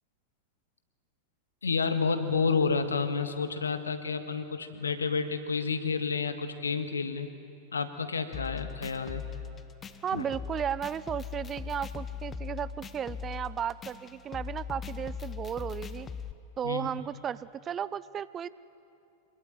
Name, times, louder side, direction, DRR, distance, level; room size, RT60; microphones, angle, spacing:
voice 1, 1.6-7.3 7.7-9.2 10.1-10.2 16.6-17.0, left 5 dB, 75° left, 9 dB, 1.7 m, -30 dB
sound 1, 8.3-16.3, left 7 dB, 20° left, 1.0 m, -40 dB
voice 2, 10.0-16.1 16.6-18.5, right 8 dB, 25° right, 18 dB, 0.5 m, -34 dB
25.0 x 21.5 x 9.3 m, 2.8 s
figure-of-eight pair, 90°, 0 cm